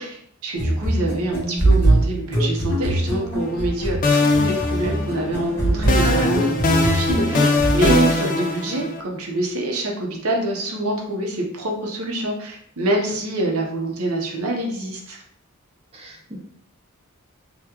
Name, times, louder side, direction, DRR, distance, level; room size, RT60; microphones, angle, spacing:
voice 1, 0.0-15.2, right 1 dB, 75° right, 0 dB, 0.7 m, -25 dB
sound 1, 0.6-8.2, right 1 dB, 15° left, 1.5 m, -22 dB
sound 2, 3.4-3.7 4.0-5.4 5.9-9.0, left 2 dB, 40° left, 0.3 m, -21 dB
voice 2, 15.9-16.4, equal, 25° right, -1 dB, 0.5 m, -30 dB
3.6 x 2.2 x 2.8 m, 0.70 s
head